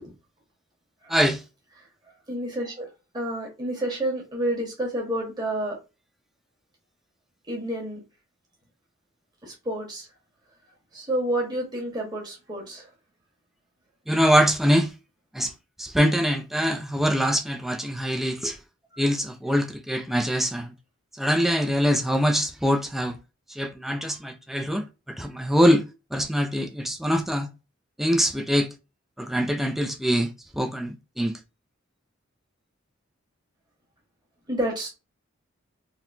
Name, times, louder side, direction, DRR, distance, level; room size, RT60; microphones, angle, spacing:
voice 1, 1.1-1.4 14.1-14.9 15.3-15.5 15.8-18.6 19.0-20.7 21.1-23.2 23.5-27.5 28.0-28.7 29.2-31.4, equal, ahead, 0.4 m, -24 dB
voice 2, 2.3-2.9 3.1-5.8 7.5-8.0 9.4-10.1 10.9-12.9 34.5-34.9, right 1 dB, 20° right, 1.5 m, -29 dB
4.0 x 2.8 x 2.7 m
head